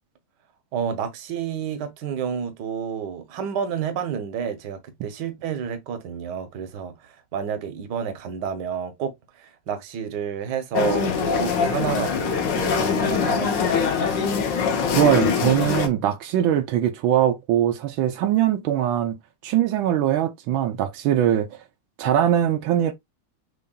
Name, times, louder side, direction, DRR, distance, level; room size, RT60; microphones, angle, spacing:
voice 1, 0.7-14.4, right 8 dB, 65° right, 1.4 m, -30 dB
sound 1, 10.7-15.9, left 6 dB, 70° left, 1.5 m, -23 dB
voice 2, 14.9-19.2 19.4-21.5 22.0-22.9, right 11 dB, 85° right, 1.4 m, -21 dB
6.5 x 3.0 x 2.3 m
omnidirectional pair, 2.1 m